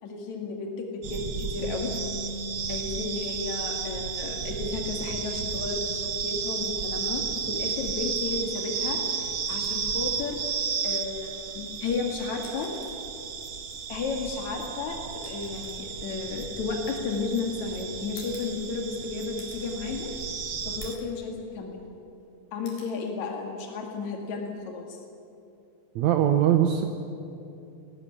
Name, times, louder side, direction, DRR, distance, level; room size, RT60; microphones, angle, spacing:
voice 1, 0.0-1.9 2.7-10.4 10.8-12.7 13.9-15.0 15.3-20.1 20.7-21.8 22.5-25.0, left 4 dB, 70° left, 2 dB, 3.4 m, -33 dB
sound 1, 1.0-20.9, right 6 dB, 55° right, 1.1 m, -33 dB
Bass guitar, 1.6-7.9, left 1 dB, 55° left, 2.9 m, -43 dB
sound 2, 9.5-10.1 11.5-11.7 12.3-13.1 14.3-17.3 18.2-19.0 19.4-19.8 20.2-20.3 20.8-21.2 21.6-22.2 22.7-23.0 24.4-24.7, left 3 dB, 90° left, 5.8 m, -50 dB
voice 2, 26.0-26.8, right 10 dB, 70° right, 5 dB, 2.3 m, -21 dB
19.5 x 19.0 x 10.0 m, 2.8 s
omnidirectional pair, 3.4 m